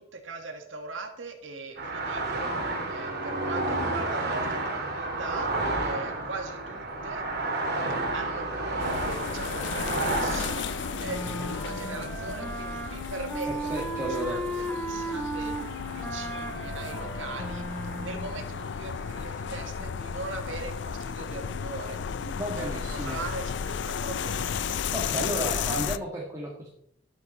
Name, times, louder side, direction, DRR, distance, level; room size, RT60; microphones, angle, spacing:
voice 1, 0.0-7.3 8.1-24.6, right 3 dB, 75° right, 5 dB, 1.8 m, -40 dB
sound 1, 1.8-15.0 15.3-16.1 16.3-17.1 17.4-19.7, right 2 dB, 55° right, 2.6 m, -32 dB
sound 2, 8.8-26.0, left 7 dB, 60° left, 0.4 m, -34 dB
sound 3, 11.0-18.4, right 2 dB, 5° left, 2.5 m, -36 dB
voice 2, 13.5-14.4 22.3-23.2 24.9-26.7, equal, 15° right, -3 dB, 1.8 m, -33 dB
13.5 x 8.6 x 4.2 m, 0.71 s
head